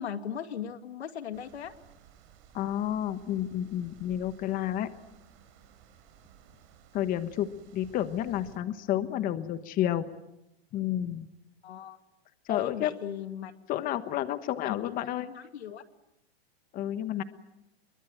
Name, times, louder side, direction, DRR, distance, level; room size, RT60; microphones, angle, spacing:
voice 1, 0.0-1.7 11.6-12.0 12.5-13.5 14.6-14.9 15.3-15.8, left 9 dB, 85° left, 9 dB, 2.3 m, -37 dB
sound 1, 1.3-8.6, right 8 dB, 40° right, 5.4 m, -57 dB
voice 2, 2.5-4.9 6.9-10.0 10.7-11.3 12.5-12.9 13.7-15.3 16.7-17.2, left 12 dB, 25° left, 12 dB, 1.2 m, -30 dB
25.5 x 23.0 x 8.9 m, 0.89 s
hypercardioid pair, 140°, 32 cm